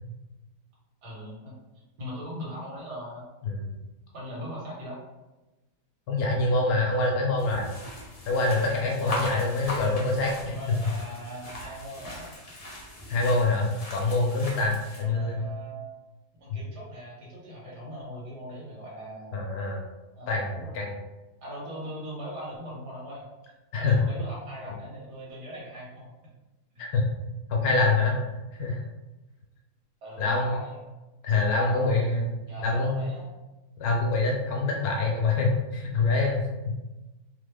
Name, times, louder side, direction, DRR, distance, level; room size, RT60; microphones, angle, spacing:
voice 1, 1.0-1.5 2.0-3.3 4.1-5.0 10.5-12.3 14.9-15.9 16.4-19.4 20.2-20.7 21.4-23.3 23.7-26.1 26.8-26.9 30.0-30.8 31.6-32.0 32.5-33.3, equal, 75° right, -6 dB, 1.8 m, -40 dB
voice 2, 6.1-7.7 8.2-10.6 13.1-15.5 19.3-19.8 20.3-20.9 23.7-24.0 26.8-27.1 27.5-28.8 30.2-30.6 31.2-32.3 32.6-33.0 33.8-36.5, left 3 dB, 70° left, -1 dB, 1.0 m, -25 dB
sound 1, 7.4-15.0, left 1 dB, 50° left, 0.4 m, -39 dB
3.4 x 2.0 x 3.3 m, 1.1 s
omnidirectional pair, 1.8 m